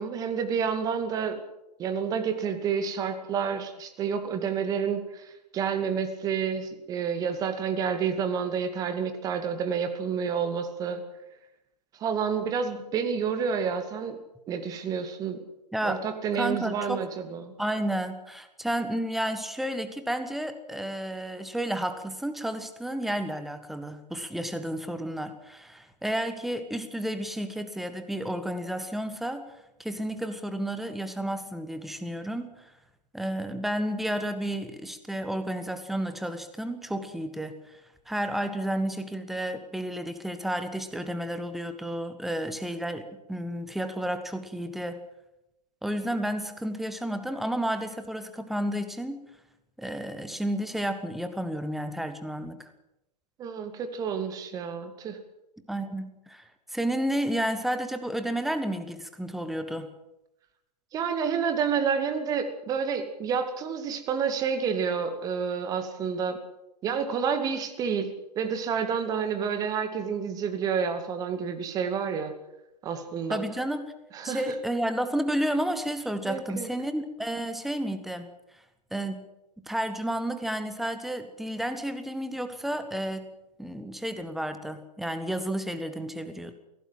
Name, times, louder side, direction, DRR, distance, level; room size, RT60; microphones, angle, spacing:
voice 1, 0.0-1.4 1.8-5.2 5.5-11.0 12.0-14.2 14.5-15.4 15.8-17.5 53.4-55.2 60.9-66.4 66.8-72.3 72.8-73.4 74.1-74.4 76.2-76.7, right 6 dB, 15° right, 8 dB, 2.3 m, -29 dB
voice 2, 15.7-16.0 16.4-17.0 17.6-29.5 29.8-32.7 33.1-37.8 38.1-45.0 45.8-49.2 49.8-52.7 55.7-59.9 73.3-73.9 74.2-78.3 78.9-79.2 79.7-83.3 83.6-86.5, right 1 dB, ahead, 10 dB, 1.4 m, -31 dB
23.5 x 17.0 x 7.6 m, 0.90 s
figure-of-eight pair, 120°, 21 cm